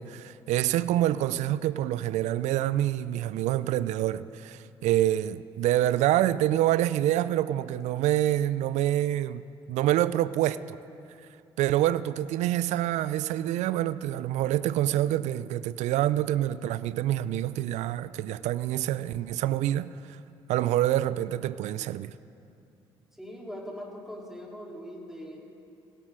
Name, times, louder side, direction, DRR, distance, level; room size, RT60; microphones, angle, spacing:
voice 1, 0.0-9.4 9.7-10.8 11.6-20.2 20.5-22.1, right 13 dB, 65° right, 0.4 m, -26 dB
voice 2, 23.2-25.4, equal, 5° right, 3.6 m, -41 dB
19.0 x 16.5 x 3.8 m
hypercardioid pair, 55°, 13 cm